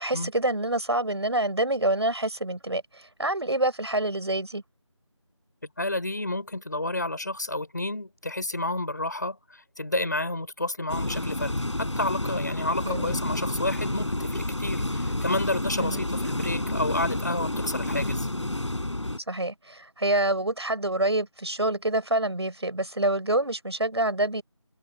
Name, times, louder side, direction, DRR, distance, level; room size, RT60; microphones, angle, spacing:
voice 1, 0.0-4.6 12.8-13.2 15.8-16.0 19.3-24.4, right 1 dB, 55° right, 6.3 m, -27 dB
voice 2, 5.8-18.3, left 2 dB, 35° left, 4.8 m, -30 dB
sound 1, 10.9-19.2, left 1 dB, 70° left, 6.0 m, -29 dB
figure-of-eight pair, 180°, 16 cm